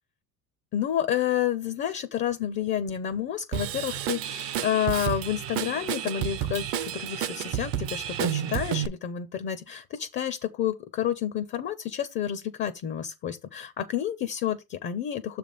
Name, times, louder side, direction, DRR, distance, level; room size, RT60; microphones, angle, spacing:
voice 1, 0.7-15.4, left 10 dB, 30° left, 0.4 m, -30 dB
Drum kit / Drum, 3.5-8.9, right 11 dB, 35° right, 0.4 m, -31 dB
7.0 x 3.3 x 5.3 m
cardioid pair, 175°, 40 cm